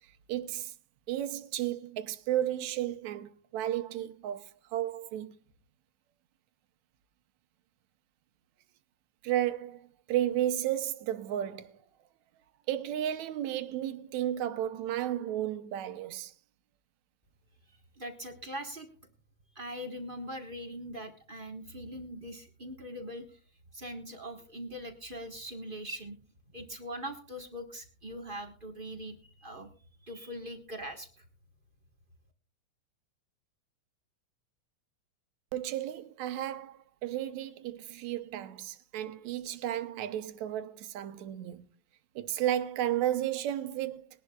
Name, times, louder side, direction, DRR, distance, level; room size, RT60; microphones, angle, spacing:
voice 1, 0.3-0.7 1.1-5.3 9.2-11.8 12.7-16.3 35.5-41.7 42.2-44.1, right 12 dB, 75° right, 2.2 m, -33 dB
voice 2, 18.0-18.9 19.5-23.4 23.7-26.2 26.5-29.7 30.0-31.2, equal, 35° right, 0.8 m, -41 dB
21.5 x 11.0 x 2.3 m
omnidirectional pair, 3.3 m